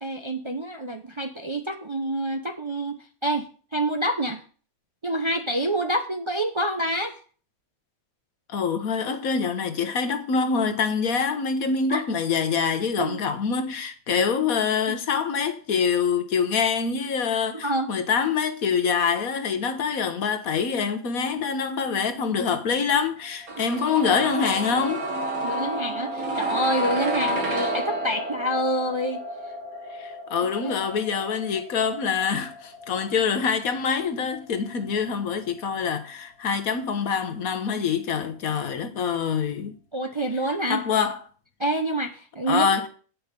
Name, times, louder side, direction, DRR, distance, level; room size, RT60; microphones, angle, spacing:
voice 1, 0.0-4.4 5.0-7.2 11.9-12.0 13.0-13.2 14.9-15.0 17.6-17.9 25.4-29.2 30.6-30.8 39.9-40.8 41.6-42.9, right 1 dB, 30° right, 0.6 m, -27 dB
voice 2, 8.5-25.0 29.9-39.8 40.7-41.2 42.5-42.9, left 6 dB, 75° left, 1.5 m, -25 dB
sound 1, 23.5-35.3 35.6-35.7, right 1 dB, 80° right, 2.2 m, -31 dB
8.5 x 6.1 x 6.7 m
omnidirectional pair, 1.5 m